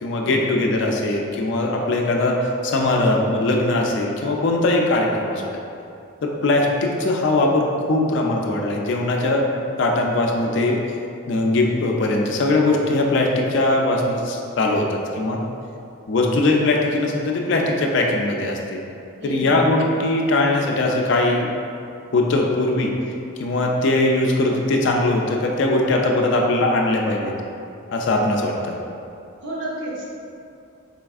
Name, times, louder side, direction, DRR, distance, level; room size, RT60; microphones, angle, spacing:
voice 1, 0.0-5.6 6.2-9.5 9.8-10.8 11.3-15.4 16.1-18.8 19.2-21.5 22.1-22.9 23.4-27.3 27.9-28.8, left 2 dB, 55° left, 1 dB, 0.3 m, -20 dB
voice 2, 19.2-19.6 29.4-30.0, right 1 dB, 55° right, -5 dB, 0.8 m, -31 dB
4.1 x 3.4 x 2.4 m, 2.5 s
head